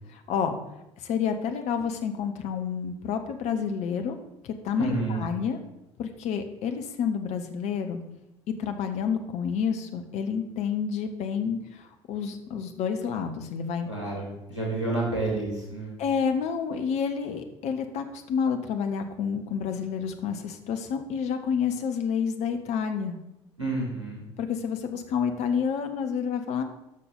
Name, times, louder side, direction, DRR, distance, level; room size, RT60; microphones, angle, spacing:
voice 1, 0.1-0.6 1.0-4.2 4.4-5.6 6.0-8.0 8.6-13.9 16.0-23.2 24.4-26.6, left 7 dB, 50° left, 7 dB, 1.0 m, -29 dB
voice 2, 4.8-5.2 13.9-15.9 23.6-24.3, right 2 dB, 85° right, -3 dB, 2.6 m, -29 dB
13.0 x 5.9 x 3.9 m, 0.89 s
figure-of-eight pair, 55°, 15 cm